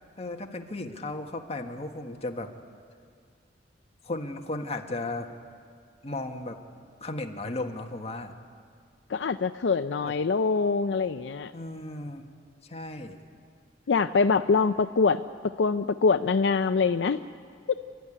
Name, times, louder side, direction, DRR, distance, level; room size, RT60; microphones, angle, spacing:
voice 1, 0.2-2.5 4.0-5.3 6.0-6.6 7.0-8.3 10.0-10.1 11.5-12.3 12.7-13.2, left 2 dB, 35° left, 3 dB, 1.6 m, -35 dB
voice 2, 9.1-11.5 13.9-15.2 15.6-17.2, left 4 dB, 75° left, 11 dB, 0.5 m, -24 dB
29.0 x 12.5 x 10.0 m, 2.2 s
head